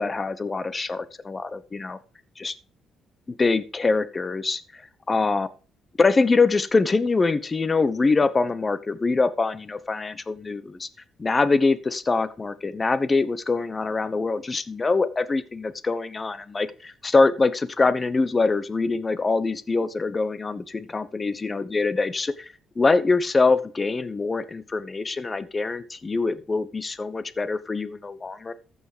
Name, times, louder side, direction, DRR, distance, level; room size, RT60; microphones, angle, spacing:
voice 1, 0.0-2.0 2.4-2.5 3.4-4.8 5.1-5.5 6.0-10.9 11.2-28.5, left 3 dB, 25° left, 14 dB, 1.0 m, -24 dB
14.5 x 5.5 x 5.0 m, 0.37 s
cardioid pair, 85°, 0 cm